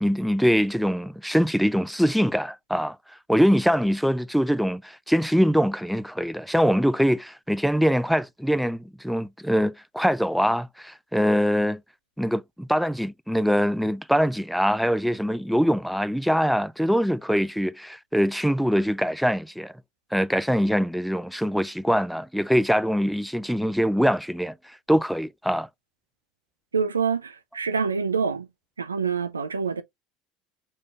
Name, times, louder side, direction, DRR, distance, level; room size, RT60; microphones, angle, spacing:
voice 1, 0.0-11.8 12.2-19.7 20.1-25.7, equal, ahead, 0.4 m, -23 dB
voice 2, 26.7-28.5 28.8-29.8, right 5 dB, 90° right, 0.4 m, -26 dB
5.2 x 3.2 x 2.4 m
figure-of-eight pair, 70°, 0 cm